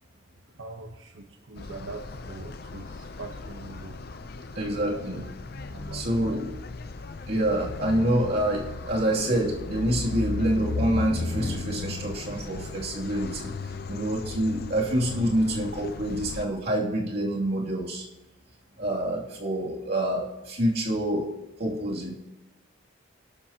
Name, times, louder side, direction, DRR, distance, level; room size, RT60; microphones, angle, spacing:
voice 1, 0.5-4.0 4.3-5.0 5.7-6.4 6.8-7.1, right 3 dB, 75° right, 2 dB, 1.1 m, -43 dB
sound 1, 1.6-16.5, left 3 dB, 45° left, 0.6 m, -36 dB
voice 2, 4.5-5.2 5.9-6.4 7.3-13.5 13.9-18.0 18.8-21.3 21.6-22.1, right 1 dB, 50° right, -3 dB, 2.8 m, -27 dB
27.5 x 12.5 x 2.9 m, 0.98 s
head